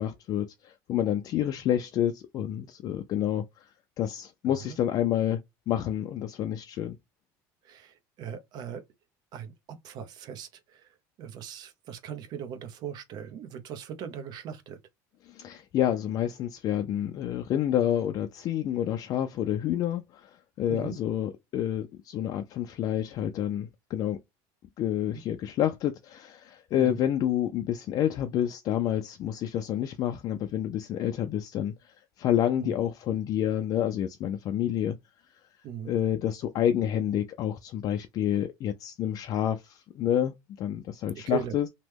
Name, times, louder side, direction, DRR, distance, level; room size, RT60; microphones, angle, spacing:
voice 1, 0.0-3.7 4.0-5.4 5.7-7.0 15.2-24.2 24.8-35.0 35.8-41.7, left 10 dB, 45° left, 0.4 m, -29 dB
voice 2, 7.6-8.8 9.3-9.5 9.8-10.8 11.2-14.8 20.7-21.0 26.7-27.0 32.6-32.7 35.6-36.0 41.3-41.5, right 8 dB, 50° right, 0.7 m, -39 dB
3.0 x 2.1 x 3.3 m
supercardioid pair, 125°, 9 cm